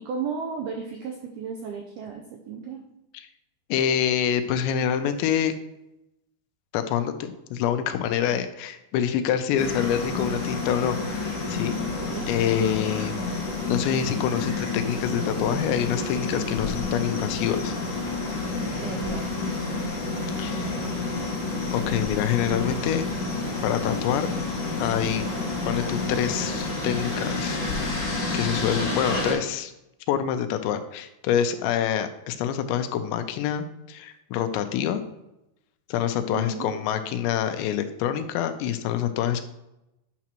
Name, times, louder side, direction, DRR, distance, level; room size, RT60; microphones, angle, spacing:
voice 1, 0.0-2.8 8.3-8.4 11.8-12.3 18.8-21.0 36.3-36.8, right 5 dB, 85° right, 2 dB, 2.1 m, -35 dB
voice 2, 3.7-5.5 6.7-11.8 12.3-13.2 13.7-17.7 20.4-20.7 21.7-23.0 23.6-24.3 24.8-25.3 25.7-27.6 28.3-29.7 30.1-35.0 35.9-39.5, left 9 dB, 85° left, 9 dB, 2.9 m, -26 dB
sound 1, 9.6-29.3, left 3 dB, 45° left, 2.5 m, -29 dB
9.3 x 6.0 x 2.9 m, 0.90 s
omnidirectional pair, 5.1 m